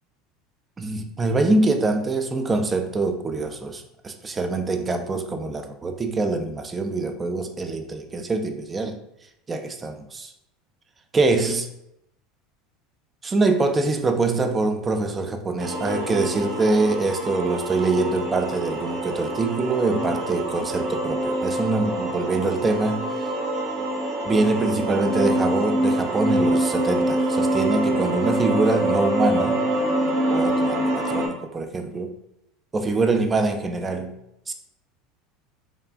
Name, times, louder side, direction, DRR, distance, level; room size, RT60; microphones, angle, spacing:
voice 1, 0.8-9.0 9.5-10.3 11.1-11.7 13.2-23.3 24.3-29.6 30.3-32.1 32.7-34.1 34.5-34.6, right 3 dB, 25° right, 6 dB, 0.4 m, -24 dB
sound 1, 15.6-31.3, right 1 dB, 55° right, 0.9 m, -25 dB
3.4 x 2.4 x 2.4 m, 0.80 s
hypercardioid pair, 80°, 0 cm